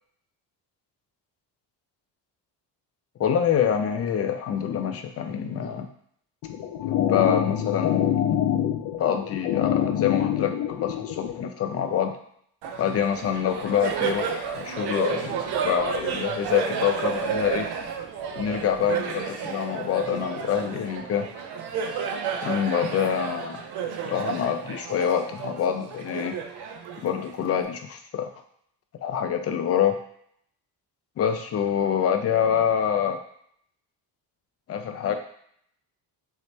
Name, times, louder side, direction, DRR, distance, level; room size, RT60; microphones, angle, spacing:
voice 1, 3.2-5.9 6.8-8.4 9.0-12.1 12.8-17.7 18.3-21.3 22.4-23.6 24.0-26.3 27.0-28.3 29.0-30.0 31.2-33.2 34.7-35.1, left 8 dB, 40° left, 6 dB, 0.4 m, -26 dB
sound 1, 6.4-11.4, left 10 dB, 85° left, 0.6 m, -25 dB
Laughter, 12.6-27.6, right 7 dB, 75° right, 0.6 m, -31 dB
3.1 x 2.7 x 3.1 m, 0.67 s
cardioid pair, 135°, 40 cm